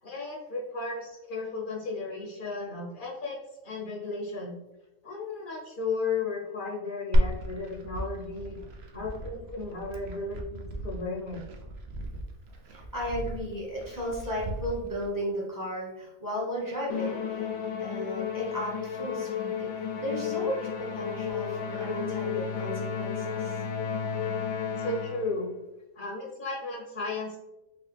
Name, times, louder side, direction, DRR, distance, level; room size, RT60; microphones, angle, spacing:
voice 1, 0.0-3.4 3.6-4.5 5.0-8.6 8.9-11.4 24.8-25.5 26.0-27.4, left 3 dB, 50° left, -2 dB, 0.7 m, -34 dB
Glass, 7.1-15.1, equal, 60° right, 0.7 m, -32 dB
voice 2, 12.7-17.5 17.8-23.6, equal, 15° right, -5 dB, 0.9 m, -35 dB
Musical instrument, 16.9-25.4, left 7 dB, 80° left, 1.0 m, -33 dB
3.9 x 2.3 x 3.2 m, 0.96 s
omnidirectional pair, 1.4 m